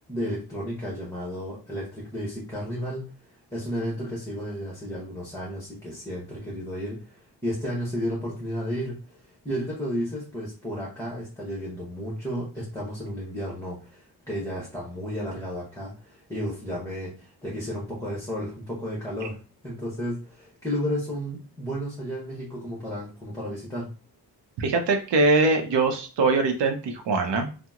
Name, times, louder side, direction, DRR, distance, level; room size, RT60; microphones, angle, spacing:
voice 1, 0.0-3.0 3.3-19.4 19.6-23.9, equal, 5° left, -5 dB, 0.9 m, -33 dB
voice 2, 24.6-27.5, right 3 dB, 85° right, 4 dB, 0.6 m, -22 dB
2.8 x 2.0 x 3.5 m, 0.35 s
wide cardioid pair, 130°, 41 cm